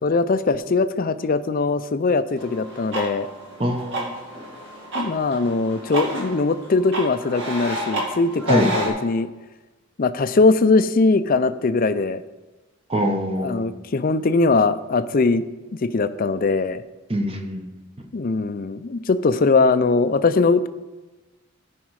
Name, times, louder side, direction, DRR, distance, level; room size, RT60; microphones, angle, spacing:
voice 1, 0.0-3.3 4.9-9.3 10.0-12.2 13.4-15.4 15.8-16.8 18.1-20.7, left 3 dB, 45° left, 12 dB, 0.5 m, -20 dB
sound 1, 2.4-8.9, right 1 dB, 60° right, 2.1 m, -30 dB
voice 2, 3.6-4.1 8.5-8.7 12.9-13.7 17.1-17.8, equal, 30° right, 4 dB, 1.0 m, -24 dB
14.5 x 5.3 x 4.8 m, 1.2 s
head